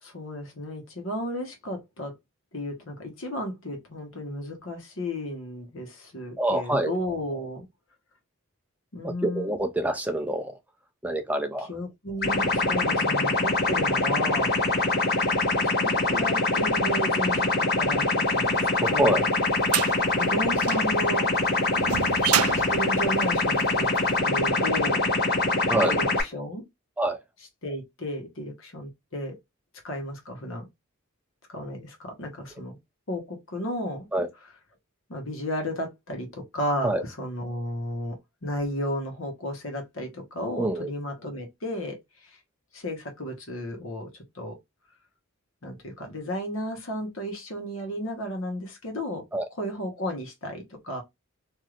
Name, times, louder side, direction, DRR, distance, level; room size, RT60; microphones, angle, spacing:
voice 1, 0.0-2.1 2.5-7.6 8.9-9.5 11.6-14.5 15.2-19.2 20.1-21.3 21.7-23.9 24.2-25.1 25.9-26.6 27.6-29.4 29.8-30.7 31.5-32.8 33.1-34.1 35.1-42.0 42.7-44.1 44.3-44.5 45.6-49.2 49.5-51.0, equal, 70° left, 1.2 m, -33 dB
voice 2, 6.4-6.9 9.0-10.5 11.0-11.7 18.8-19.2 25.7-26.0 27.0-27.2 34.1-34.3 36.8-37.0 40.6-40.9 49.3-49.4, right 1 dB, 5° right, 0.4 m, -26 dB
sound 1, 12.2-26.2, left 2 dB, 45° left, 1.4 m, -24 dB
sound 2, 18.7-24.0, right 12 dB, 90° right, 0.3 m, -30 dB
3.1 x 2.7 x 2.5 m
head